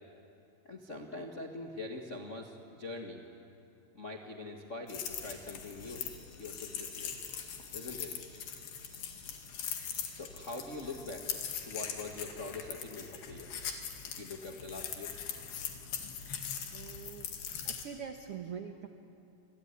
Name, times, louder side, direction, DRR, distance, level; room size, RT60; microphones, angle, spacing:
voice 1, 0.6-3.2 3.9-6.1 6.4-7.1 7.7-8.2 10.1-11.3 11.6-13.5 14.2-15.2, left 2 dB, 55° left, 1 dB, 0.8 m, -43 dB
sound 1, 4.9-17.9, left 8 dB, 75° left, 3.9 m, -41 dB
sound 2, 5.7-11.9, left 2 dB, 35° left, 4.1 m, -61 dB
voice 2, 16.7-17.3 17.6-18.9, right 7 dB, 80° right, 5 dB, 1.3 m, -43 dB
28.0 x 22.0 x 9.8 m, 2.6 s
omnidirectional pair, 4.5 m